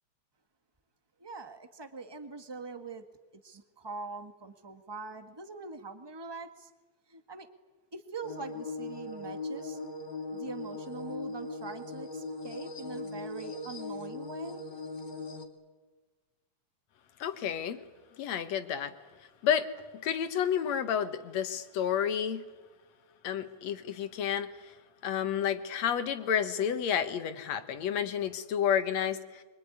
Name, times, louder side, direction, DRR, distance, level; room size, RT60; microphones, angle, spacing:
voice 1, 1.2-3.1 3.4-6.7 7.1-7.5 7.9-9.8 10.3-14.6, right 3 dB, 20° right, 8 dB, 0.7 m, -43 dB
sound 1, 8.2-15.5, left 2 dB, 35° left, 3.1 m, -39 dB
voice 2, 17.2-17.8 18.2-18.9 19.4-19.7 19.9-22.5 23.2-24.7 25.0-29.4, left 8 dB, 70° left, 10 dB, 2.5 m, -30 dB
24.5 x 23.5 x 9.8 m, 1.3 s
omnidirectional pair, 3.3 m